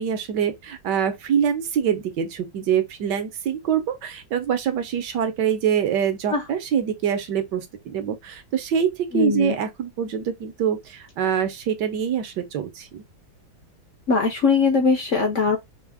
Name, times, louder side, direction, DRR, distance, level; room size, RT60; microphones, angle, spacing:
voice 1, 0.0-13.0, right 8 dB, 65° right, 1.3 m, -25 dB
voice 2, 9.1-9.6 14.1-15.6, left 4 dB, 65° left, 0.7 m, -20 dB
5.3 x 2.4 x 3.5 m
omnidirectional pair, 2.2 m